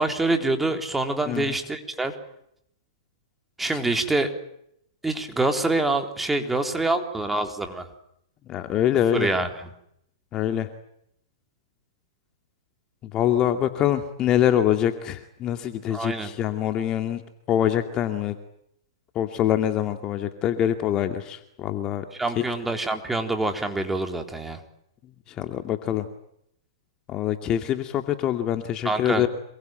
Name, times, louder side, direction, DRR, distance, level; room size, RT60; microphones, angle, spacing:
voice 1, 0.0-2.1 3.6-4.3 5.0-7.9 9.1-9.7 15.9-16.3 22.1-24.6 28.8-29.2, right 2 dB, 5° right, 5 dB, 3.8 m, -26 dB
voice 2, 8.5-9.3 10.3-10.7 13.1-17.2 17.5-18.3 19.1-22.0 22.4-22.5 25.3-26.1 27.1-29.3, left 11 dB, 30° left, 7 dB, 2.3 m, -24 dB
27.0 x 22.5 x 9.2 m, 0.75 s
hypercardioid pair, 135°, 2 cm